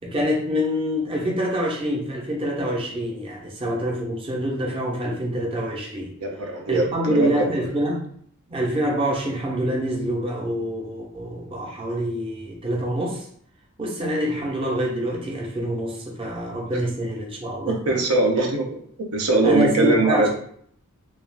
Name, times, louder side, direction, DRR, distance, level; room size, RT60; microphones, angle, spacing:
voice 1, 0.0-6.1 6.4-8.0 8.5-13.3 13.8-18.0 18.4-18.5 19.4-20.3, equal, 25° right, -2 dB, 0.5 m, -26 dB
voice 2, 6.2-7.5 17.7-18.8 19.1-20.3, right 2 dB, 85° right, 2 dB, 0.5 m, -21 dB
2.3 x 2.3 x 3.2 m, 0.63 s
head